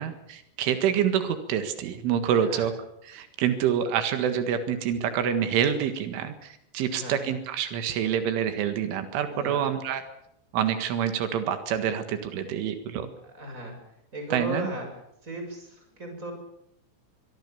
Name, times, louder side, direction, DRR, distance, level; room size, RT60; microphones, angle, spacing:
voice 1, 0.0-2.7 3.1-10.0 10.5-13.1 14.3-14.7, right 9 dB, 85° right, 8 dB, 4.2 m, -27 dB
voice 2, 2.3-2.7 6.9-7.2 9.3-9.7 13.2-13.8 14.1-16.3, right 1 dB, 15° right, 4 dB, 7.2 m, -36 dB
24.0 x 23.5 x 7.1 m, 0.76 s
omnidirectional pair, 5.5 m